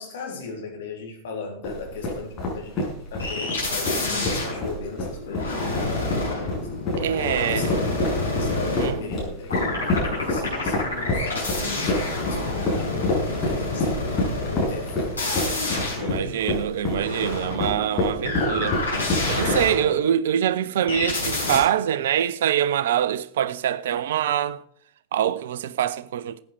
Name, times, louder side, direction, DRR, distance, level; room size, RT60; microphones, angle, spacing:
voice 1, 0.0-6.9 7.4-16.4, left 3 dB, 60° left, 4.0 m, -37 dB
Footsteps Mountain Boots Rock Run Sequence Mono, 1.6-19.9, left 2 dB, 25° left, 6.6 m, -28 dB
sound 1, 3.2-9.2 9.5-20.2 20.9-21.6, left 2 dB, 75° left, 5.9 m, -28 dB
voice 2, 7.0-7.7 8.6-9.0 16.0-24.6 25.1-26.4, right 10 dB, 60° right, 0.7 m, -24 dB
14.0 x 9.2 x 4.8 m
figure-of-eight pair, 90°, 0 cm